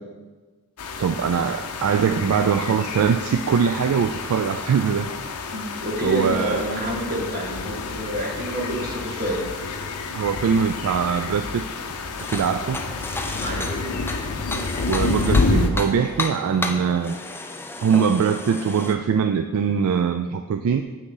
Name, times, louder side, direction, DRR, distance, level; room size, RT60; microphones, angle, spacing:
sound 1, 0.8-15.7, left 4 dB, 85° left, 0.6 m, -29 dB
voice 1, 1.0-5.1 6.0-6.7 10.1-11.7 12.3-12.8 14.9-17.2 17.8-20.8, right 6 dB, 70° right, 8 dB, 0.3 m, -22 dB
voice 2, 5.5-9.4 13.4-13.9, right 1 dB, 45° right, -3 dB, 2.0 m, -28 dB
sound 2, 12.2-19.0, left 2 dB, 10° left, 0.4 m, -32 dB
7.7 x 6.1 x 3.9 m, 1.3 s
head